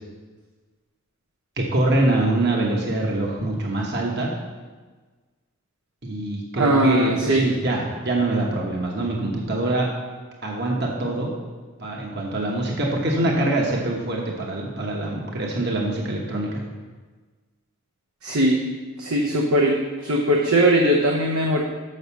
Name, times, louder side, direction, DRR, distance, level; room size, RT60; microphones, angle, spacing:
voice 1, 1.6-4.3 6.0-9.9 10.4-11.3 11.8-16.6, right 2 dB, 50° right, -1 dB, 1.2 m, -24 dB
voice 2, 6.5-7.5 18.2-18.6 19.0-21.6, right 1 dB, 80° right, 0 dB, 0.8 m, -20 dB
6.5 x 6.4 x 6.9 m, 1.4 s
head